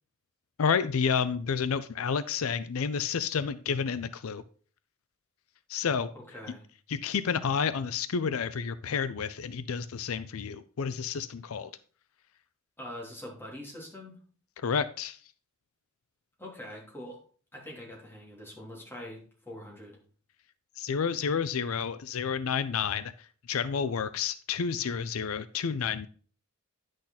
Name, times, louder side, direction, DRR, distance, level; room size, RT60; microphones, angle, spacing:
voice 1, 0.6-4.4 5.7-6.1 6.9-11.7 14.6-15.2 20.8-23.1 23.5-26.1, left 6 dB, 80° left, 14 dB, 0.5 m, -30 dB
voice 2, 6.1-6.6 12.8-14.2 16.4-17.2 17.5-20.0, left 1 dB, 10° left, -3 dB, 3.1 m, -44 dB
10.0 x 6.5 x 4.0 m, 0.42 s
head